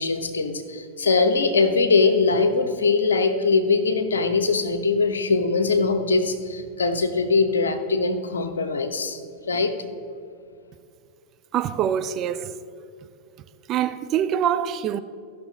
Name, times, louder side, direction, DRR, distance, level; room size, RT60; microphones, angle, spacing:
voice 1, 0.0-9.2 9.5-9.7, left 4 dB, 70° left, 0.9 m, -21 dB
voice 2, 11.5-12.5 13.7-15.0, right 9 dB, 35° right, 0.4 m, -24 dB
16.0 x 6.1 x 3.6 m
figure-of-eight pair, 90°, 0 cm